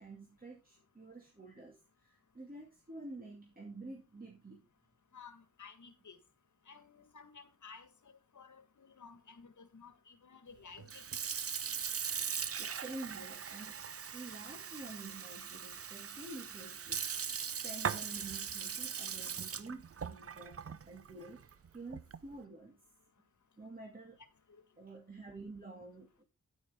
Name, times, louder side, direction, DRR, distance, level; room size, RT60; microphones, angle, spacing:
voice 1, 0.0-4.6 12.6-13.8 14.1-17.3 17.6-21.4 21.7-22.8 23.6-24.2 24.8-26.2, right 2 dB, 25° right, 2.4 m, -49 dB
voice 2, 5.1-6.2 6.7-11.0 24.5-24.6, left 5 dB, 65° left, 1.6 m, -55 dB
Sink (filling or washing) / Fill (with liquid), 10.8-22.3, right 7 dB, 45° right, 0.6 m, -40 dB
9.8 x 9.2 x 3.6 m
cardioid pair, 60°, 32 cm